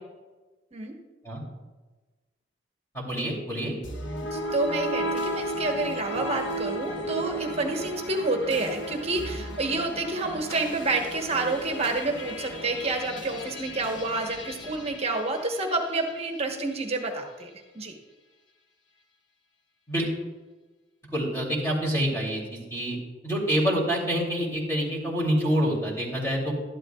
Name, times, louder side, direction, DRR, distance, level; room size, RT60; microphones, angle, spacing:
voice 1, 2.9-3.7 19.9-20.1 21.1-22.4 22.7-23.0 23.2-26.5, equal, 15° left, -4 dB, 2.8 m, -26 dB
sound 1, 3.8-16.2, equal, 90° left, 1.1 m, -35 dB
voice 2, 4.2-17.5 17.7-17.9, right 2 dB, 35° right, 3 dB, 1.1 m, -29 dB
12.5 x 11.5 x 2.3 m, 1.2 s
head